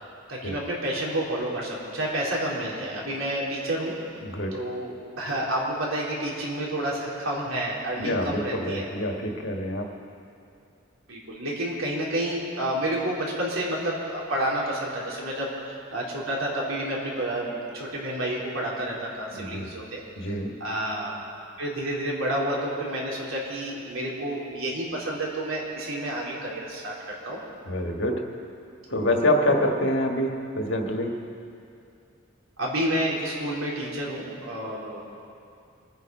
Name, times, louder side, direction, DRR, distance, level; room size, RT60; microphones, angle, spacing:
voice 1, 0.3-3.9 4.5-8.8 11.1-20.3 20.6-21.1 21.6-27.4 28.9-29.1 32.6-35.1, right 1 dB, 90° right, -4 dB, 3.9 m, -30 dB
voice 2, 4.2-4.5 8.0-9.9 19.3-19.7 20.2-20.5 27.6-28.2 28.9-31.2, left 1 dB, 65° left, 2 dB, 1.6 m, -26 dB
24.5 x 9.3 x 5.5 m, 2.6 s
head